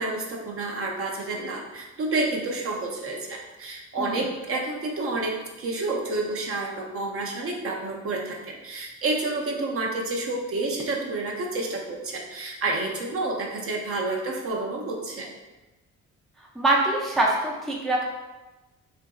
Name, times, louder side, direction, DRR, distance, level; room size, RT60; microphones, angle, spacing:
voice 1, 0.0-15.3, right 2 dB, 50° right, 0 dB, 0.5 m, -29 dB
voice 2, 16.6-18.1, right 2 dB, ahead, -3 dB, 0.4 m, -24 dB
2.6 x 2.5 x 2.3 m, 1.1 s
cardioid pair, 90°, 30 cm